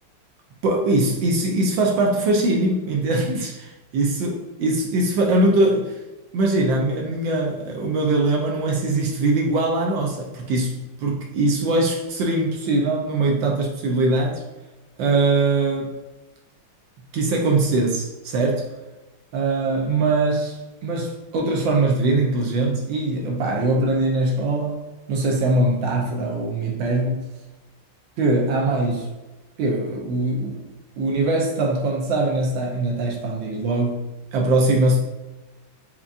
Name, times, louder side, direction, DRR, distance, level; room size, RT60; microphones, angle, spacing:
voice 1, 0.6-6.0 6.3-10.7 11.0-14.4 15.0-16.0 17.1-18.7 19.3-24.8 25.1-27.3 28.2-29.1 29.6-30.7 31.0-35.0, right 2 dB, 75° right, 0 dB, 1.2 m, -22 dB
5.2 x 2.3 x 2.4 m, 1.1 s
omnidirectional pair, 2.3 m